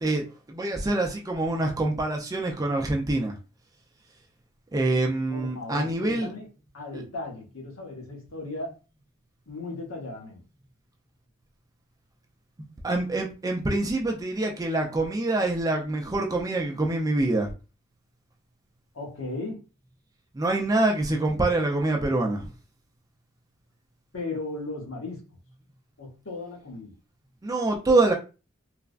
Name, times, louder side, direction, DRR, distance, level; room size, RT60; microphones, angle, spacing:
voice 1, 0.0-3.3 4.7-6.3 6.9-7.0 12.8-17.5 20.4-22.4 27.4-28.1, right 2 dB, 15° right, 0.4 m, -25 dB
voice 2, 5.3-6.5 6.7-8.7 9.5-10.4 18.9-19.6 24.1-25.2 26.0-26.9, left 2 dB, 75° left, 1.0 m, -36 dB
3.2 x 2.0 x 2.4 m
head